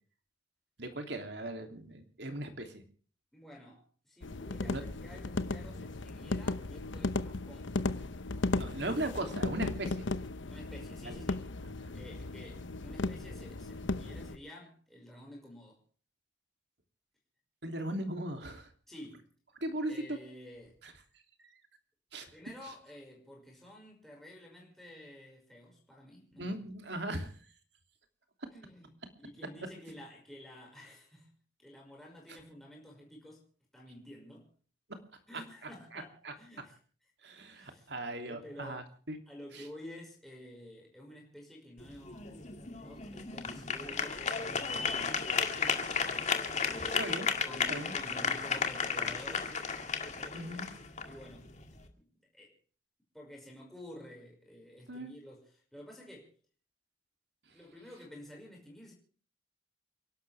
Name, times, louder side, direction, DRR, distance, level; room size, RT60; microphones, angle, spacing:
voice 1, 0.8-2.8 4.7-4.8 8.6-10.1 11.0-11.2 17.6-18.7 19.6-20.2 20.8-20.9 21.4-21.5 22.1-22.3 26.4-27.3 35.9-36.3 37.2-39.2 39.5-39.6 47.0-47.3 47.7-47.9 50.3-50.7 54.9-55.1, right 1 dB, 65° right, 3.0 m, -38 dB
voice 2, 3.3-9.4 10.5-11.4 11.9-15.8 18.9-19.3 19.9-20.8 22.3-26.6 28.5-28.9 29.2-31.3 31.6-33.5 33.7-34.5 35.3-36.8 37.5-37.9 38.2-38.9 39.3-45.9 46.6-47.2 47.5-49.6 50.2-50.6 51.0-51.6 52.0-52.5 53.1-56.3 57.5-58.9, left 1 dB, ahead, 5.6 m, -51 dB
sound 1, 4.2-14.4, left 2 dB, 85° left, 0.9 m, -36 dB
sound 2, 41.8-51.9, left 5 dB, 40° left, 2.2 m, -34 dB
29.5 x 12.0 x 3.5 m
head